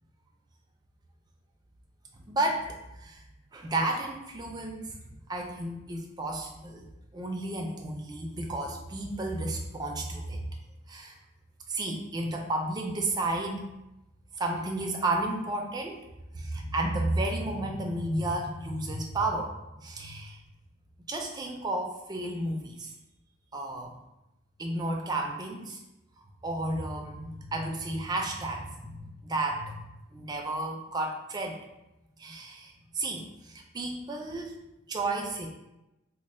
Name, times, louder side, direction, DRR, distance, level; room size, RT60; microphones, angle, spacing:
voice 1, 2.1-3.2 3.5-5.0 5.3-6.8 7.1-10.6 10.9-11.2 11.7-13.7 14.4-16.1 16.3-20.4 21.1-22.9 23.5-23.9 24.6-25.8 26.4-29.8 30.1-31.6 32.2-34.6 34.9-35.5, right 2 dB, 20° right, 2 dB, 0.3 m, -32 dB
3.0 x 2.1 x 4.1 m, 0.95 s
head